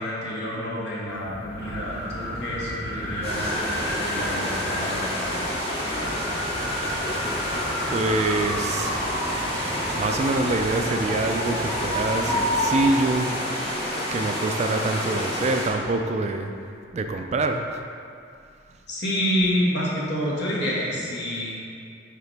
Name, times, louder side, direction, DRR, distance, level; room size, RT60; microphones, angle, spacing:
voice 1, 0.0-5.4 18.9-21.6, equal, 65° left, -6 dB, 1.4 m, -28 dB
sound 1, 1.1-13.2, equal, 10° left, 1.1 m, -31 dB
sound 2, 3.2-15.7, equal, 35° left, 1.5 m, -29 dB
voice 2, 7.9-9.0 9.9-13.3 14.1-16.5 16.9-17.8, right 2 dB, 35° right, 5 dB, 0.3 m, -25 dB
6.7 x 4.8 x 3.3 m, 2.4 s
head